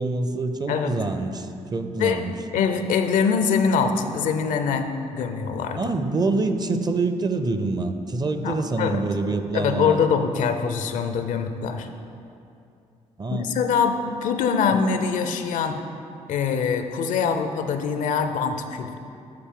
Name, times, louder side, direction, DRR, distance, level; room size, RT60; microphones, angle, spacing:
voice 1, 0.0-1.5 1.7-2.5 5.7-10.0 13.2-13.6, right 3 dB, 30° right, 8 dB, 0.6 m, -26 dB
voice 2, 2.5-4.9 5.1-5.8 8.4-9.0 9.5-11.9 13.3-15.8 16.3-19.0, left 6 dB, 80° left, 7 dB, 0.5 m, -23 dB
12.5 x 4.2 x 3.7 m, 2.6 s
cardioid pair, 70°, 13 cm